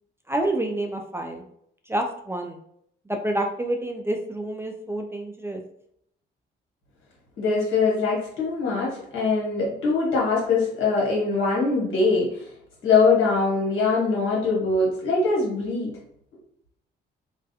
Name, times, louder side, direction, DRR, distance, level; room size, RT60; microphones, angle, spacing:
voice 1, 0.3-1.4 1.9-2.6 3.1-5.6, right 1 dB, 10° right, 3 dB, 0.3 m, -28 dB
voice 2, 7.4-12.3 12.8-15.9, left 4 dB, 80° left, -4 dB, 1.2 m, -22 dB
2.3 x 2.1 x 2.7 m, 0.71 s
cardioid pair, 90°, 20 cm